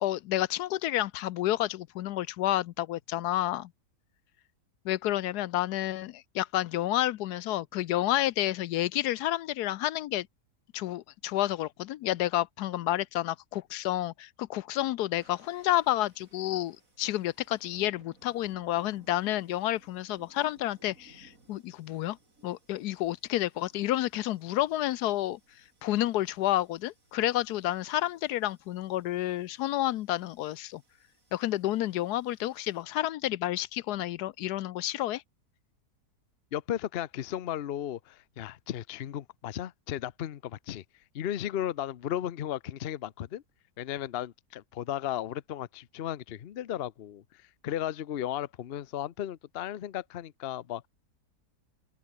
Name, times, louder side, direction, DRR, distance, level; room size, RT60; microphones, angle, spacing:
voice 1, 0.0-3.7 4.8-10.3 10.7-22.2 22.4-25.4 25.8-30.8 31.3-35.2, left 14 dB, 75° left, 1.1 m, -30 dB
sound 1, 15.1-32.8, right 2 dB, 55° right, 5.2 m, -64 dB
voice 2, 36.5-40.8 41.1-43.4 43.8-50.9, left 11 dB, 55° left, 0.7 m, -35 dB
open air
omnidirectional pair, 1.8 m